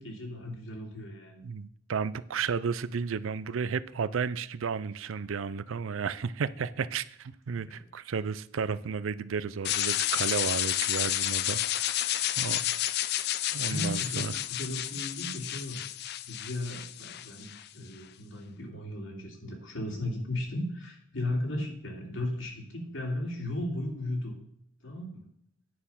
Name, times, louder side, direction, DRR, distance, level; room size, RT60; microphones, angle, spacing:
voice 1, 0.0-1.4 7.7-7.8 13.4-15.8 16.2-24.3 24.8-25.3, left 1 dB, 80° left, 2.7 m, -36 dB
voice 2, 1.4-12.0 12.4-12.7 13.5-14.3, right 6 dB, 85° right, 0.5 m, -33 dB
sound 1, 9.6-17.7, left 13 dB, 55° left, 0.4 m, -31 dB
9.4 x 6.6 x 5.6 m
head